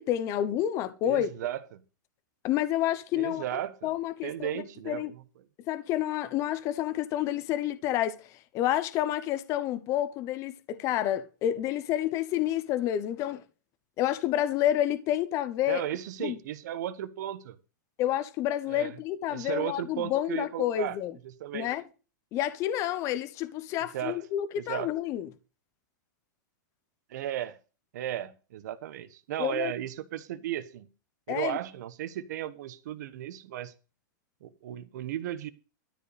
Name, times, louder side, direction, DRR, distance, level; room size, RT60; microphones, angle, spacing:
voice 1, 0.0-1.3 2.4-5.1 5.7-8.2 8.5-13.4 14.0-15.8 16.2-16.4 18.0-21.1 21.5-21.8 22.3-25.3 29.4-29.7 31.3-31.6, left 12 dB, 30° left, 1.0 m, -29 dB
voice 2, 1.0-1.8 3.1-3.9 4.2-5.2 15.7-17.6 18.7-18.9 19.3-21.0 21.2-21.7 23.9-24.2 24.6-24.9 27.1-27.6 27.9-30.9 31.3-33.7 34.4-35.5, right 12 dB, 60° right, 1.2 m, -35 dB
13.0 x 5.1 x 8.2 m
supercardioid pair, 160°, 11 cm